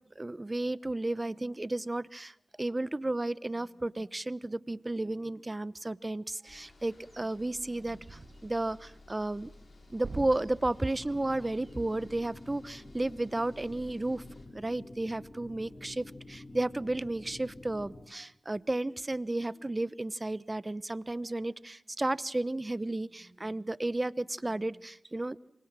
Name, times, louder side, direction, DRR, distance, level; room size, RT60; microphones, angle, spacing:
voice 1, 0.2-2.3 2.6-9.5 9.9-14.2 14.5-25.4, right 2 dB, 30° right, 19 dB, 1.0 m, -33 dB
sound 1, 6.5-14.5, left 2 dB, 60° left, 6.1 m, -56 dB
sound 2, 7.9-17.6 17.9-18.1 18.5-19.3, right 3 dB, 50° right, 1.4 m, -51 dB
sound 3, 10.8-18.1, left 2 dB, 40° left, 3.0 m, -49 dB
28.5 x 24.5 x 7.5 m, 0.77 s
cardioid pair, 45°, 0 cm